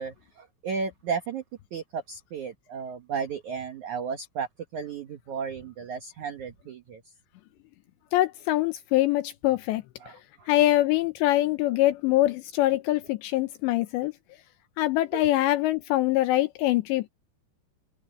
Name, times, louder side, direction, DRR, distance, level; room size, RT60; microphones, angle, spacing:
voice 1, 0.0-1.4 1.7-4.5 4.7-7.0 10.0-10.5 15.1-15.2, right 6 dB, 65° right, 1.9 m, -34 dB
voice 2, 8.1-9.8 10.5-14.1 14.8-17.1, left 16 dB, 80° left, 2.8 m, -24 dB
omnidirectional pair, 5.3 m